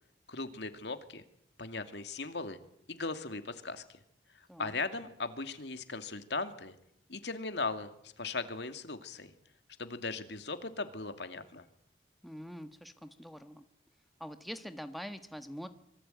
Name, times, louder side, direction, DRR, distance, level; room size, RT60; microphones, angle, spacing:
voice 1, 0.3-1.2 1.6-2.6 2.9-4.0 4.3-6.7 7.1-9.3 9.8-11.6, left 3 dB, 75° left, 8 dB, 2.4 m, -38 dB
voice 2, 12.2-13.6 14.2-15.7, equal, ahead, 8 dB, 1.3 m, -44 dB
26.0 x 23.5 x 9.2 m, 0.75 s
head